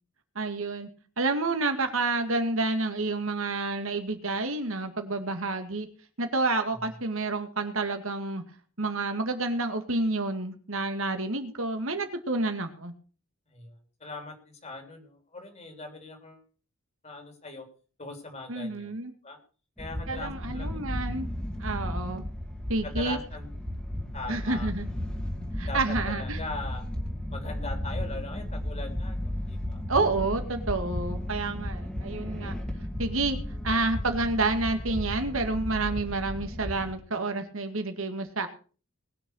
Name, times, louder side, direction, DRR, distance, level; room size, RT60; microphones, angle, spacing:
voice 1, 0.4-0.9 1.2-5.9 6.2-8.4 8.8-12.9 18.5-19.1 20.1-21.3 21.6-22.3 22.7-23.2 24.3-24.9 25.6-26.4 29.9-32.5 33.0-33.4 33.6-38.5, right 3 dB, 65° right, 6 dB, 2.1 m, -29 dB
voice 2, 13.5-16.4 17.0-17.7 18.0-18.9 19.2-19.4 19.8-20.7 22.0-22.2 22.8-23.5 24.1-24.7 25.7-26.9 27.3-29.8, left 3 dB, 30° left, 5 dB, 3.6 m, -41 dB
sound 1, 19.8-36.9, left 1 dB, 5° left, 2.4 m, -34 dB
20.5 x 6.8 x 6.4 m, 0.39 s
head